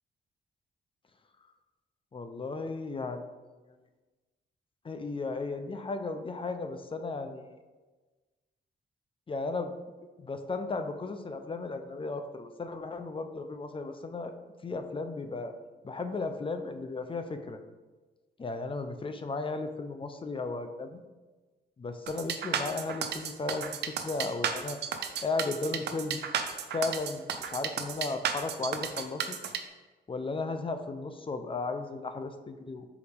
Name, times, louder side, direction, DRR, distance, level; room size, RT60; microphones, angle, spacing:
voice 1, 2.1-3.2 4.8-7.5 9.3-9.7 10.2-14.3 14.6-15.5 15.8-17.6 18.4-21.0 21.8-24.8 25.2-26.2 26.7-29.4 30.1-32.9, left 3 dB, 30° left, 8 dB, 0.6 m, -35 dB
sound 1, 22.1-29.6, right 8 dB, 80° right, 0.6 m, -33 dB
5.0 x 4.1 x 5.2 m, 1.3 s
cardioid pair, 90°, 17 cm